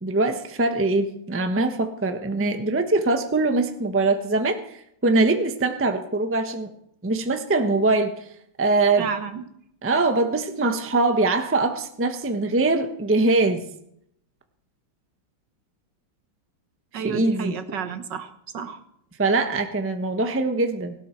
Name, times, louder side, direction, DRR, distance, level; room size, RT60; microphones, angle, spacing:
voice 1, 0.0-4.6 5.0-6.7 7.0-8.2 8.6-9.1 9.8-13.6 16.9-17.5 19.2-20.9, right 3 dB, 10° right, 6 dB, 0.8 m, -22 dB
voice 2, 9.0-9.4 16.9-18.8, right 7 dB, 65° right, 9 dB, 1.7 m, -31 dB
18.0 x 17.0 x 4.6 m, 0.72 s
omnidirectional pair, 2.2 m